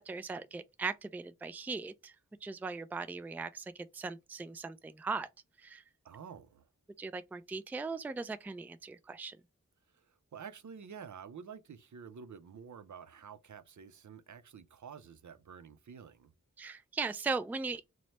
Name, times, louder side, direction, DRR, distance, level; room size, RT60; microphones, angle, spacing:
voice 1, 0.0-2.1 2.4-5.3 5.6-5.8 7.0-9.4 16.6-17.8, right 4 dB, 5° right, 0.3 m, -39 dB
voice 2, 6.0-6.7 9.9-16.3, right 7 dB, 65° right, 0.5 m, -49 dB
3.0 x 2.1 x 4.1 m
cardioid pair, 45°, 32 cm